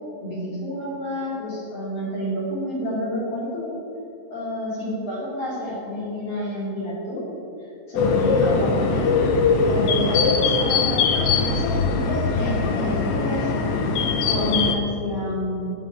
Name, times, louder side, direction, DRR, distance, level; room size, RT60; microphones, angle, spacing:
voice 1, 0.2-3.7 4.3-7.3 7.6-9.1 9.7-13.9 14.2-15.7, left 1 dB, 50° left, -6 dB, 3.8 m, -29 dB
sound 1, 8.0-14.7, left 4 dB, 65° left, 1.5 m, -21 dB
12.5 x 5.5 x 8.8 m, 2.8 s
omnidirectional pair, 3.6 m